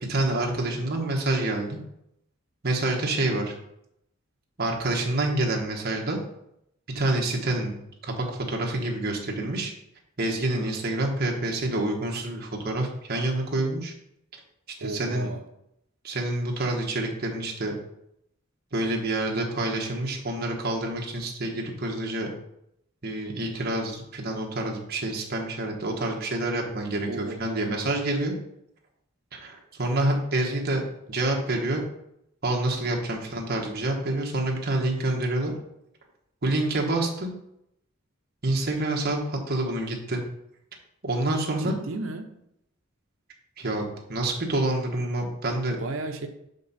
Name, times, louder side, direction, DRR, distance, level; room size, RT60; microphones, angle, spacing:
voice 1, 0.1-1.8 2.6-3.5 4.6-6.2 6.9-7.7 8.0-9.7 10.2-13.9 14.8-15.3 16.0-17.7 18.7-22.3 23.0-28.4 29.3-30.8 31.1-31.8 32.4-35.5 36.4-37.3 38.4-40.2 41.0-41.8 43.6-45.8, right 2 dB, 50° right, 0 dB, 1.3 m, -27 dB
voice 2, 14.8-15.4 27.1-27.9 41.6-42.4 45.8-46.3, right 2 dB, 70° right, 7 dB, 0.7 m, -34 dB
5.9 x 5.2 x 4.1 m, 0.79 s
head